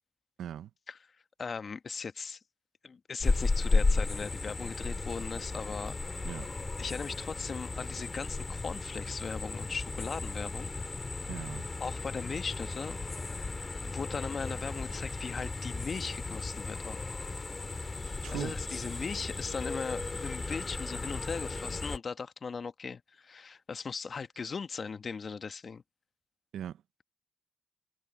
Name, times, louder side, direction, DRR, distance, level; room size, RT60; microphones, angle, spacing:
voice 1, 0.4-0.7 6.2-6.5 11.3-11.7 17.7-17.9 18.2-18.5 26.5-26.8, right 10 dB, 75° right, 0.9 m, -39 dB
voice 2, 1.4-2.4 2.8-5.9 6.8-10.7 11.8-13.0 13.8-17.0 18.3-25.8, left 5 dB, 45° left, 1.3 m, -38 dB
sound 1, 3.2-22.0, left 3 dB, 30° left, 2.8 m, -34 dB
supercardioid pair, 60°, 0 cm